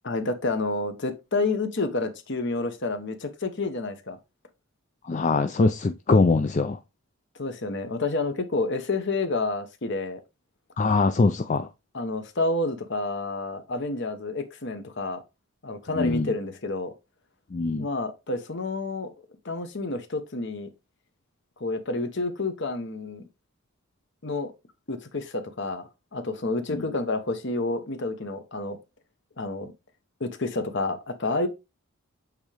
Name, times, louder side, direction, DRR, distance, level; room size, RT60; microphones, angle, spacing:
voice 1, 0.0-4.2 7.4-10.2 11.9-15.2 15.6-16.9 17.8-19.1 19.4-20.7 21.6-23.3 24.2-24.5 24.9-25.8 26.1-28.8 29.4-29.7 30.2-31.5, left 2 dB, 55° left, 1.0 m, -29 dB
voice 2, 5.0-6.8 10.8-11.7 15.9-16.3 17.5-17.9 26.7-26.8, left 3 dB, 35° left, 0.4 m, -22 dB
8.0 x 3.6 x 3.3 m
head